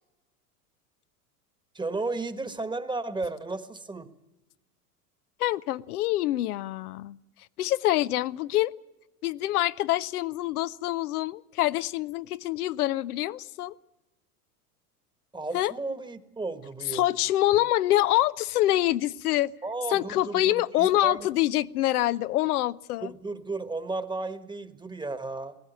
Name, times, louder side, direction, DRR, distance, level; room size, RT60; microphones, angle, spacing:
voice 1, 1.7-4.1 15.3-17.1 17.5-17.6 19.6-21.3 23.0-25.6, right 3 dB, 10° right, 1.3 m, -34 dB
voice 2, 5.4-7.2 7.6-8.7 9.2-13.7 15.5-15.7 16.9-19.5 19.9-23.1, left 15 dB, 75° left, 0.6 m, -25 dB
18.5 x 16.0 x 9.1 m
hypercardioid pair, 90°, 45 cm